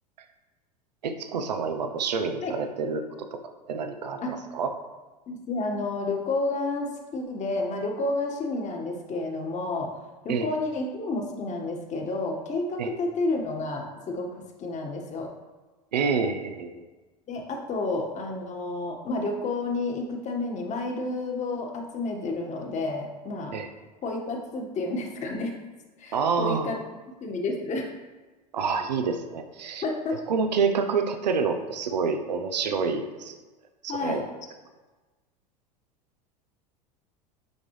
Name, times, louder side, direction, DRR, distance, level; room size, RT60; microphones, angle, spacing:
voice 1, 1.0-3.0 3.4-4.7 10.3-10.5 12.8-12.9 15.9-16.8 23.5-23.7 26.1-26.7 28.5-29.8 30.3-33.4 33.8-34.2, right 5 dB, 80° right, 7 dB, 0.8 m, -28 dB
voice 2, 5.3-9.9 10.2-14.3 14.6-15.3 17.3-23.6 24.0-25.5 26.0-26.8 27.2-27.9 29.8-30.2 33.9-34.2, left 2 dB, 35° left, 2 dB, 1.6 m, -30 dB
9.3 x 5.2 x 3.2 m, 1.2 s
hypercardioid pair, 85°, 21 cm